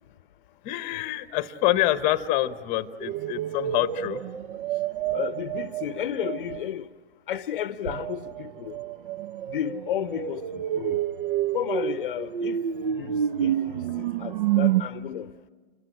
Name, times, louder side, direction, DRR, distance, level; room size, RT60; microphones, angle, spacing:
voice 1, 0.6-4.2 13.4-13.9, left 14 dB, 25° left, 1.0 m, -27 dB
sound 1, 3.0-6.7 7.9-14.8, right 11 dB, 55° right, 0.8 m, -29 dB
voice 2, 5.1-6.9 7.3-8.8 9.5-11.0 11.5-12.6 12.9-15.3, left 10 dB, 55° left, 0.7 m, -33 dB
28.0 x 22.5 x 8.8 m
hypercardioid pair, 125°, 31 cm